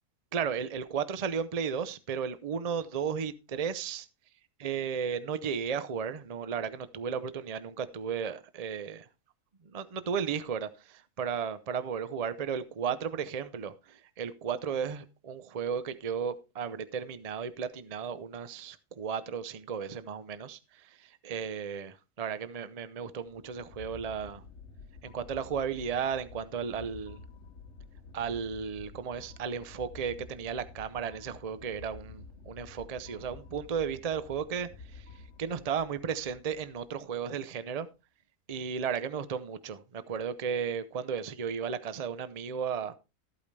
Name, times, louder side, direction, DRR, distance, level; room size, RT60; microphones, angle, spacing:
voice 1, 0.3-4.1 4.6-9.1 9.6-24.4 25.0-27.2 28.1-35.0 35.4-37.9 38.5-43.0, right 7 dB, 35° right, 0.7 m, -34 dB
sound 1, 23.2-37.4, left 4 dB, 60° left, 1.2 m, -50 dB
14.0 x 8.6 x 3.3 m
omnidirectional pair, 1.5 m